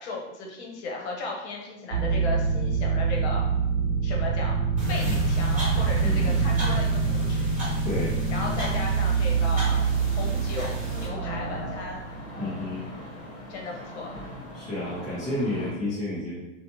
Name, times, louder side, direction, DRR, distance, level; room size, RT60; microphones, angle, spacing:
voice 1, 0.0-3.4 4.0-4.6 4.9-7.5 8.3-12.0 13.5-14.1, left 3 dB, 60° left, -1 dB, 0.8 m, -35 dB
sound 1, 1.9-12.3, right 5 dB, 60° right, 0.5 m, -26 dB
sound 2, 4.8-11.1, equal, 20° right, 1.1 m, -32 dB
voice 2, 6.0-6.5 7.8-8.2 12.4-12.8 14.5-16.4, left 1 dB, ahead, -12 dB, 0.3 m, -31 dB
sound 3, 9.3-15.7, left 1 dB, 20° left, 0.8 m, -40 dB
2.7 x 2.1 x 2.9 m, 1.0 s
hypercardioid pair, 140°, 37 cm